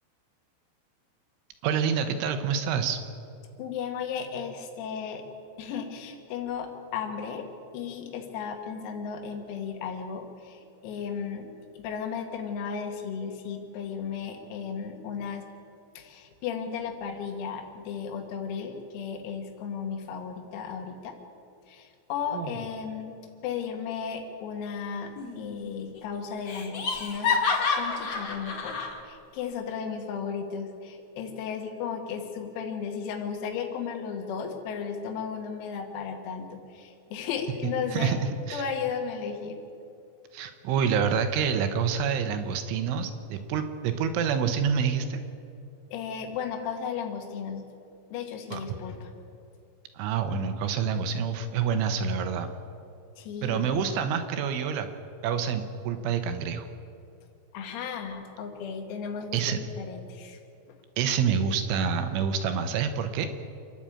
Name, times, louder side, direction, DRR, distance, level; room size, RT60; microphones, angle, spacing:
voice 1, 1.6-3.0 22.3-22.5 37.9-38.2 38.5-38.6 40.3-45.2 48.5-48.6 50.0-52.5 53.4-54.9 55.2-56.7 59.3-59.6 61.0-63.3, right 7 dB, 75° right, 8 dB, 3.2 m, -27 dB
voice 2, 3.6-5.2 5.6-15.5 16.0-21.2 21.7-38.2 38.5-39.6 45.9-47.7 48.1-49.1 53.2-54.0 57.5-60.4, left 6 dB, 85° left, 4 dB, 4.6 m, -35 dB
Laughter, 25.2-25.7 26.0-26.1 26.5-28.9, left 5 dB, 45° left, 2.3 m, -29 dB
28.0 x 11.0 x 8.6 m, 2.5 s
omnidirectional pair, 6.0 m